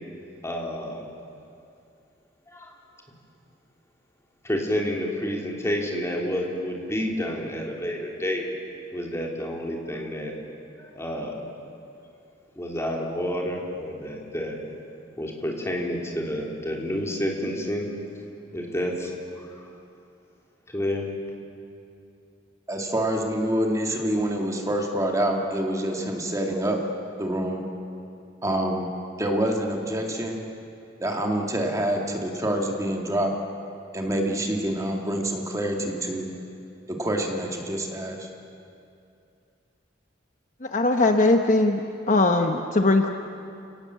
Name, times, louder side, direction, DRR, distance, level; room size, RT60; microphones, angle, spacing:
voice 1, 0.4-1.0 2.5-2.7 4.4-8.4 8.9-10.3 10.8-11.3 12.5-14.6 15.2-17.9 18.5-19.7 20.7-21.1, equal, 15° left, -1 dB, 3.3 m, -29 dB
voice 2, 22.7-26.8 27.2-27.6 28.4-28.9 29.2-30.4 31.0-33.3 33.9-36.3 36.9-38.3, right 1 dB, 20° right, 1 dB, 2.2 m, -26 dB
voice 3, 40.6-41.8 42.1-43.1, left 2 dB, 40° left, 5 dB, 1.0 m, -20 dB
29.5 x 18.0 x 7.5 m, 2.5 s
head